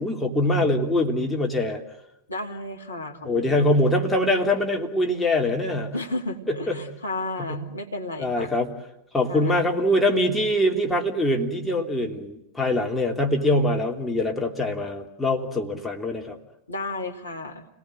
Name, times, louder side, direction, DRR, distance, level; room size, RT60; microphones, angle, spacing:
voice 1, 0.0-1.8 3.2-5.9 6.5-6.8 7.4-7.6 8.2-8.7 9.1-16.4, left 1 dB, 5° left, 0 dB, 3.2 m, -23 dB
voice 2, 2.3-3.8 5.9-8.5 9.3-9.6 16.7-17.7, left 2 dB, 80° left, 3 dB, 2.4 m, -33 dB
29.5 x 19.5 x 7.7 m, 0.88 s
figure-of-eight pair, 90°, 0 cm